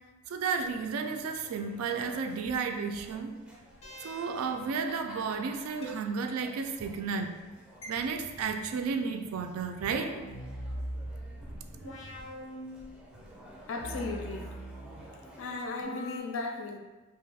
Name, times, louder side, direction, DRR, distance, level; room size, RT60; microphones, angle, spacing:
voice 1, 0.3-3.3 4.0-7.4 7.9-10.2, right 5 dB, 75° right, 0.3 m, -32 dB
sound 1, 0.6-15.7, equal, 5° right, 0.5 m, -51 dB
sound 2, 1.8-2.6 3.8-4.6 5.8-5.9 7.8-7.9 9.8-13.2 13.8-15.3 15.8-16.2, equal, 90° left, 0.7 m, -42 dB
voice 2, 13.7-14.5 15.4-16.8, left 3 dB, 60° left, 0.3 m, -36 dB
2.9 x 2.3 x 3.3 m
head